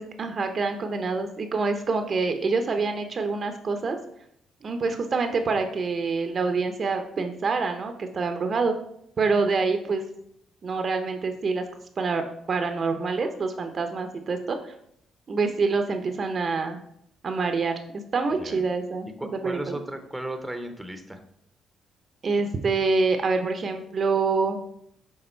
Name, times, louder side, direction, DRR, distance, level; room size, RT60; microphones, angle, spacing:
voice 1, 0.0-4.0 4.6-8.8 9.2-10.0 10.6-11.6 12.0-14.8 15.3-16.8 17.2-17.7 18.1-19.8 22.2-24.6, right 4 dB, 45° right, 7 dB, 0.7 m, -26 dB
voice 2, 19.2-21.2, right 1 dB, 5° right, 6 dB, 0.8 m, -35 dB
6.8 x 3.5 x 4.4 m, 0.73 s
cardioid pair, 90°, 0 cm